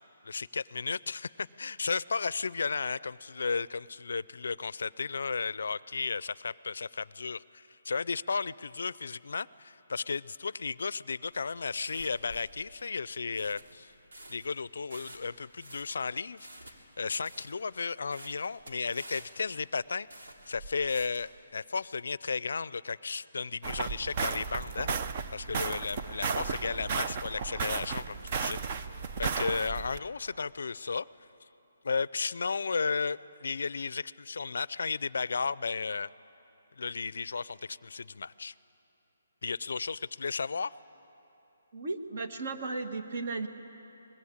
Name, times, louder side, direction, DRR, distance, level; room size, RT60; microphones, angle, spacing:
voice 1, 0.2-13.9 14.3-20.1 20.5-24.9 25.3-28.9 29.2-31.1 31.8-36.1 36.8-38.5 39.4-40.8, left 4 dB, 70° left, 20 dB, 0.4 m, -34 dB
sound 1, 11.2-21.3, right 1 dB, 90° right, 3.1 m, -50 dB
sound 2, 23.6-30.0, right 5 dB, 30° right, 0.6 m, -34 dB
voice 2, 41.7-43.5, right 3 dB, 50° right, 6 dB, 1.6 m, -35 dB
25.5 x 21.0 x 8.7 m, 3.0 s
hypercardioid pair, 170°, 0 cm